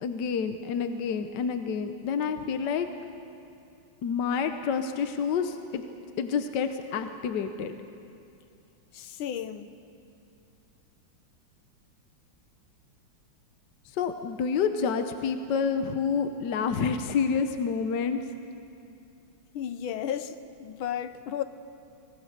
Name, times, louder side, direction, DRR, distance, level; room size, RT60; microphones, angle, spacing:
voice 1, 0.0-2.9 4.0-5.8 6.2-7.7 13.9-18.2, left 6 dB, 65° left, 7 dB, 1.3 m, -28 dB
voice 2, 8.9-9.8 19.5-21.4, left 9 dB, 80° left, 11 dB, 1.6 m, -34 dB
24.5 x 18.5 x 6.6 m, 2.6 s
omnidirectional pair, 2.3 m